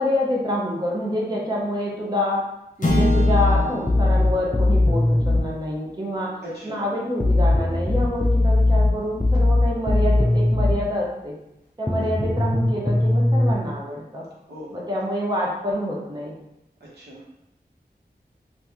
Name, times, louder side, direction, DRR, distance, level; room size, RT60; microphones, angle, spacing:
voice 1, 0.0-2.4 2.8-6.3 6.6-11.3 11.8-14.2 14.7-16.3, left 1 dB, 25° right, -3 dB, 0.7 m, -27 dB
sound 1, 2.8-7.3, equal, 50° left, 0.8 m, -30 dB
sound 2, 2.9-5.5 7.2-10.8 11.9-13.5, left 2 dB, 15° left, 0.4 m, -19 dB
voice 2, 6.4-6.8 12.0-12.3 14.5-14.9 16.8-17.3, equal, 90° right, -6 dB, 1.2 m, -39 dB
2.9 x 2.6 x 3.5 m, 0.87 s
wide cardioid pair, 60°, 17 cm